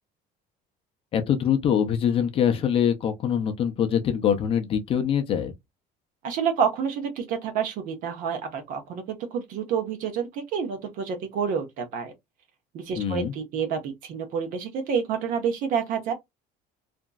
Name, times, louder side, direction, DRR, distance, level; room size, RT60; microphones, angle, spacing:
voice 1, 1.1-5.5 13.0-13.3, left 8 dB, 35° left, 0.5 m, -24 dB
voice 2, 6.2-9.0 9.3-12.1 12.7-16.1, right 7 dB, 55° right, 0.9 m, -28 dB
2.9 x 2.5 x 2.2 m
cardioid pair, 175°, 17 cm